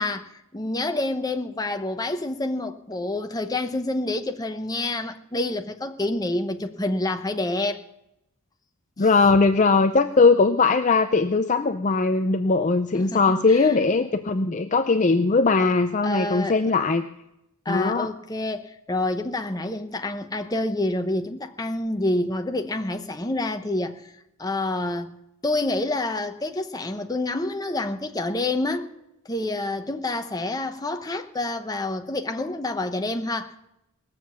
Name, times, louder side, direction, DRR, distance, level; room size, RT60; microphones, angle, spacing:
voice 1, 0.0-7.8 9.0-9.1 12.9-13.9 15.6-15.7 16.0-16.6 17.6-24.0 24.4-25.1 25.4-28.9 29.3-33.6, left 2 dB, 15° left, 0.9 m, -28 dB
voice 2, 9.0-17.0 17.7-18.1, left 3 dB, 35° left, 0.5 m, -20 dB
19.0 x 7.5 x 7.3 m
head